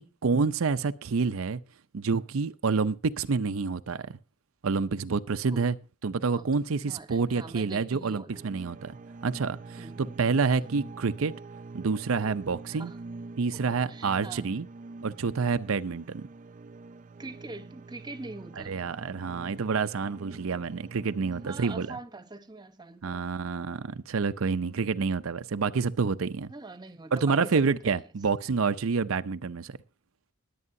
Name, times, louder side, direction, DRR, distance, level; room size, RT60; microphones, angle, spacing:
voice 1, 0.0-1.6 1.9-4.0 4.6-5.8 6.0-9.0 9.2-11.3 11.7-12.9 13.4-14.7 15.0-16.2 18.7-22.0 23.0-26.5 27.1-29.8, right 4 dB, 80° right, 0.6 m, -28 dB
voice 2, 6.3-8.4 9.8-10.7 12.7-13.0 13.9-14.6 17.2-18.8 21.4-23.4 24.7-24.8 26.5-27.8, right 2 dB, 20° right, 0.9 m, -44 dB
sound 1, 8.3-22.0, right 3 dB, 40° right, 0.5 m, -45 dB
20.5 x 8.5 x 2.7 m
head